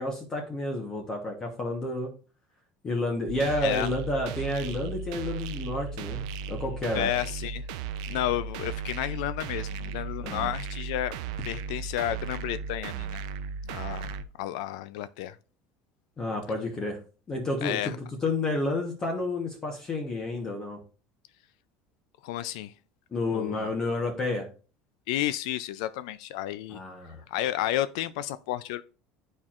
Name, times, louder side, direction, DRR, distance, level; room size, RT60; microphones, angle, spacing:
voice 1, 0.0-2.1 2.8-6.2 6.5-7.1 10.2-10.5 16.2-17.0 17.3-17.9 18.2-20.8 23.1-24.5 26.7-27.2, left 2 dB, 20° left, 1.0 m, -30 dB
sound 1, 3.3-14.2, right 6 dB, 75° right, 0.5 m, -36 dB
voice 2, 3.6-3.9 6.9-7.7 8.1-11.1 11.4-13.2 13.6-14.1 14.4-15.4 17.6-18.0 22.2-22.7 23.3-23.7 25.1-26.8 27.3-28.8, left 13 dB, 80° left, 0.3 m, -31 dB
10.5 x 4.4 x 2.4 m
cardioid pair, 175°, 4 cm